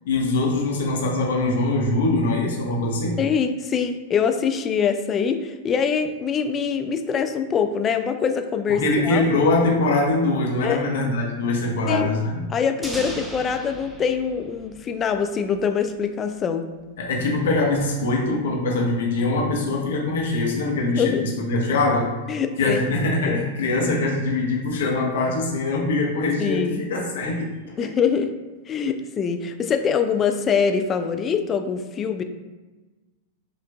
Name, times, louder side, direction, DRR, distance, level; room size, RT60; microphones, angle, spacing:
voice 1, 0.0-3.2 8.7-12.4 17.0-27.8, left 2 dB, 65° left, -2 dB, 0.9 m, -23 dB
voice 2, 3.2-9.3 10.6-10.9 11.9-12.1 12.5-16.7 21.0-21.3 22.3-22.8 23.3-23.5 26.4-26.8 27.8-28.3 28.7-32.2, left 6 dB, 25° left, 7 dB, 0.3 m, -24 dB
sound 1, 12.8-15.6, equal, 5° right, 0.7 m, -37 dB
4.9 x 2.5 x 2.3 m, 1.2 s
figure-of-eight pair, 100°, 0 cm